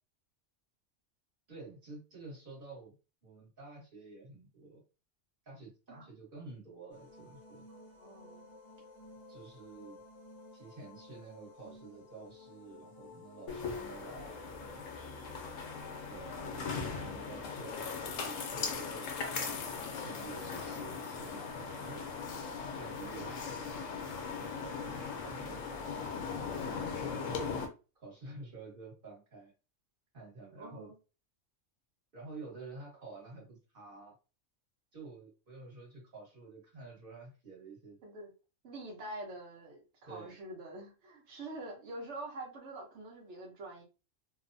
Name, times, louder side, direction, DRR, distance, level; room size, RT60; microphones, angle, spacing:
voice 1, 1.5-2.9 3.2-4.8 5.4-7.6 9.3-10.0 10.5-14.8 16.0-19.6 19.9-22.0 22.7-23.5 24.4-25.8 26.5-26.8 28.0-29.5 30.1-30.9 32.1-34.1 34.9-38.0 40.1-40.4, right 3 dB, 45° right, -4 dB, 1.4 m, -50 dB
sound 1, 6.9-16.5, left 2 dB, 20° left, 0.6 m, -54 dB
voice 2, 7.7-8.5 30.6-31.0 38.0-38.3 38.6-43.8, right 2 dB, 65° right, 1 dB, 1.1 m, -46 dB
sound 2, 13.5-27.7, left 5 dB, 85° left, 1.0 m, -39 dB
2.9 x 2.0 x 2.5 m, 0.33 s
omnidirectional pair, 1.3 m